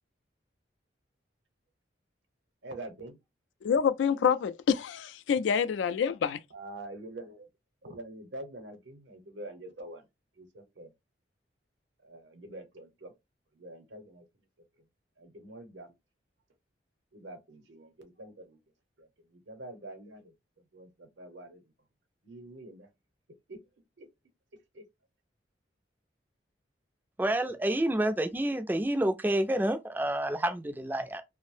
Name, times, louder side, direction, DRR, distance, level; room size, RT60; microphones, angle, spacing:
voice 1, 2.6-3.2 6.5-7.5 7.8-10.1 10.4-10.9 12.0-13.1 13.5-14.3 15.2-15.9 17.1-18.6 19.0-21.6 22.2-22.9 23.5-23.6 24.0-24.1 24.7-24.8, right 1 dB, 80° right, 0.7 m, -46 dB
voice 2, 3.6-6.4, left 7 dB, 85° left, 0.3 m, -27 dB
voice 3, 27.2-31.2, right 1 dB, 10° right, 0.3 m, -29 dB
2.6 x 2.0 x 3.1 m
head